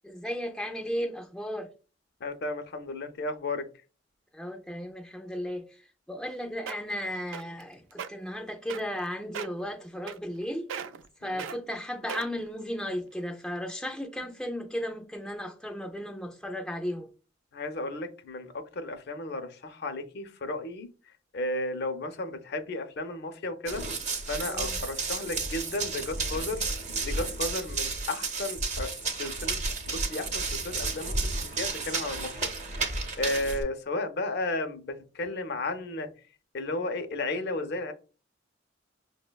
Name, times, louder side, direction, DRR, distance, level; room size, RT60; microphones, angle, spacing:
voice 1, 0.0-1.7 4.3-5.6 6.1-10.7 11.2-17.1 24.4-24.8, equal, 5° left, 0.3 m, -35 dB
voice 2, 2.2-3.7 11.2-11.4 17.5-20.9 21.3-23.8 24.2-26.6 27.0-28.9 29.2-29.5 29.8-32.5 33.2-36.1 36.5-37.9, left 2 dB, 60° left, 0.5 m, -33 dB
sound 1, 6.2-6.3 6.7-7.0 7.3-7.6 7.9-8.1 8.7-9.0 9.3-9.6 10.1-10.4 10.7-11.1 11.4-11.6 12.1-12.5 13.1-13.2, right 7 dB, 80° right, 0.3 m, -37 dB
Run, 23.7-33.6, right 3 dB, 40° right, 0.6 m, -32 dB
5.4 x 2.1 x 2.2 m
head